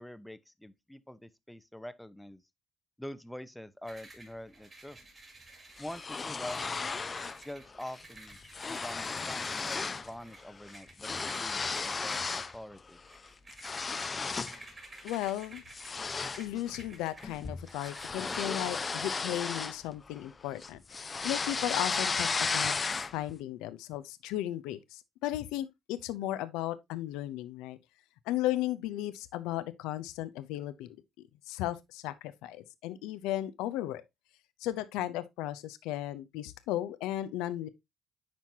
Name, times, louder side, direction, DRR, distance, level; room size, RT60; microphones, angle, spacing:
voice 1, 0.0-2.4 3.0-5.0 5.8-6.6 7.4-8.4 8.6-13.0, left 1 dB, 5° left, 0.8 m, -45 dB
sound 1, 3.9-18.1, right 2 dB, 35° right, 4.1 m, -52 dB
sound 2, 5.8-7.4 7.8-8.0 8.3-10.1 10.4-12.6 13.0-14.6 15.1-15.3 15.7-20.3 20.6-23.3, left 4 dB, 35° left, 0.6 m, -34 dB
voice 2, 15.0-15.6 16.4-22.8 23.1-27.8 28.3-30.9 31.5-34.0 34.6-37.7, left 14 dB, 85° left, 0.6 m, -35 dB
10.5 x 4.5 x 2.8 m
supercardioid pair, 60°, 0 cm